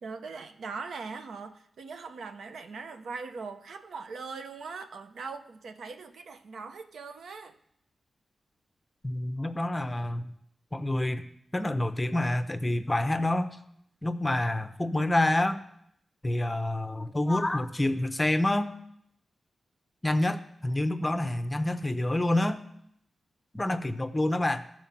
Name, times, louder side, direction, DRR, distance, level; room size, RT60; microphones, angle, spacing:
voice 1, 0.0-7.5, right 4 dB, 80° right, 8 dB, 0.7 m, -41 dB
voice 2, 9.0-10.2 10.7-11.3 11.5-13.6 14.0-15.6 16.2-18.7 20.0-22.6 23.5-24.6, left 1 dB, 20° left, 10 dB, 0.7 m, -27 dB
13.0 x 4.5 x 5.9 m, 0.73 s
cardioid pair, 75°, 0 cm